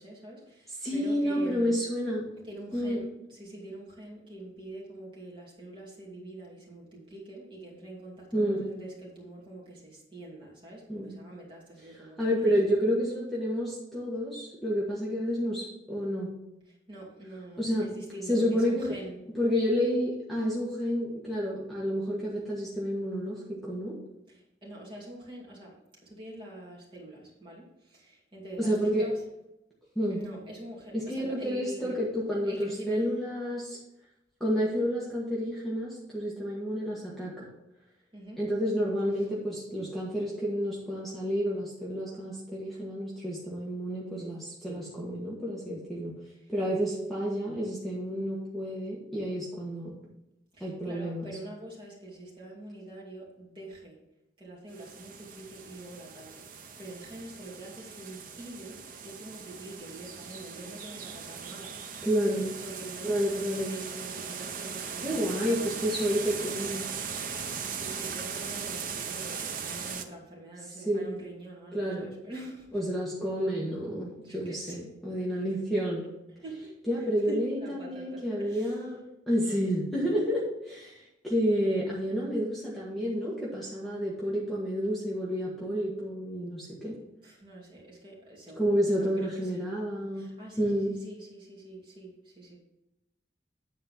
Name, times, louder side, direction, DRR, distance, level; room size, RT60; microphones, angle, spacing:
voice 1, 0.0-1.8 2.4-12.6 16.9-19.2 24.3-25.8 26.0-29.2 30.1-32.0 32.5-33.1 38.1-38.4 46.4-46.5 50.5-54.0 54.4-61.8 62.6-65.7 66.6-66.7 67.7-72.8 74.2-74.8 75.3-75.4 76.4-76.7 77.0-78.7 87.2-89.7 90.1-92.6, right 1 dB, 25° right, -4 dB, 2.6 m, -45 dB
voice 2, 0.8-2.3 2.7-3.0 8.3-8.6 10.9-11.1 12.2-16.3 17.6-17.9 18.3-18.9 19.3-24.0 28.6-29.1 29.9-30.2 30.9-33.8 34.4-37.5 38.4-46.1 46.5-50.0 50.6-51.4 62.0-62.5 63.0-63.8 65.0-66.9 70.8-71.1 71.7-72.1 72.7-76.0 76.9-79.0 79.3-86.9 88.6-91.0, equal, ahead, -6 dB, 1.4 m, -30 dB
sound 1, 54.7-70.0, right 6 dB, 45° right, 0.7 m, -39 dB
9.4 x 4.4 x 5.7 m, 0.88 s
head